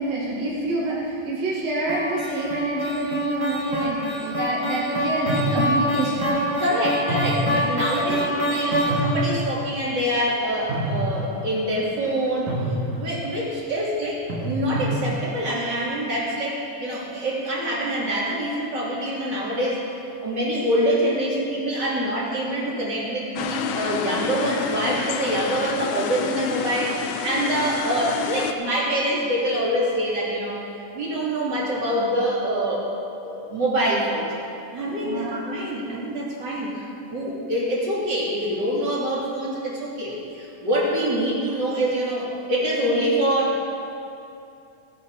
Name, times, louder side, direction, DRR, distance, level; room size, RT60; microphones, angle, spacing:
voice 1, 0.0-6.6 34.8-35.4, right 2 dB, 55° right, -7 dB, 3.1 m, -27 dB
sound 1, 1.9-9.3, equal, 20° right, 0.9 m, -26 dB
sound 2, 5.3-6.1 7.1-7.8 8.2-8.3 8.9-9.6 10.7-11.5 11.8-12.1 12.5-13.1 14.3-15.0, equal, 80° right, 3.4 m, -27 dB
voice 2, 6.6-12.5 12.9-19.8 20.2-30.6 30.9-32.8 33.2-34.3 34.7-43.8, right 1 dB, 35° right, -5 dB, 2.9 m, -25 dB
sound 3, 23.4-28.5, left 8 dB, 85° left, 2.1 m, -29 dB
16.5 x 9.5 x 4.7 m, 2.7 s
omnidirectional pair, 3.5 m